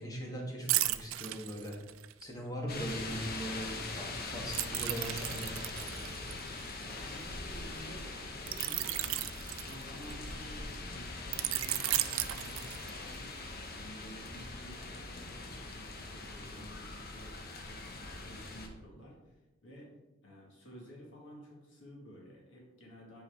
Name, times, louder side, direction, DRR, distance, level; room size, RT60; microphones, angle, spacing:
voice 1, 0.0-1.8 2.2-3.6 4.0-5.5, equal, 20° left, -1 dB, 1.4 m, -40 dB
sound 1, 0.7-2.2 4.5-7.3 8.5-10.3 11.3-13.2 13.6-13.8, right 15 dB, 85° right, 0.4 m, -35 dB
sound 2, 2.7-18.7, left 2 dB, 50° left, 0.9 m, -42 dB
voice 2, 6.0-6.5 6.8-15.5 15.7-17.4 17.6-17.9 18.2-19.9 20.2-23.2, equal, 65° left, -2 dB, 1.9 m, -53 dB
8.2 x 4.6 x 3.5 m, 1.1 s
head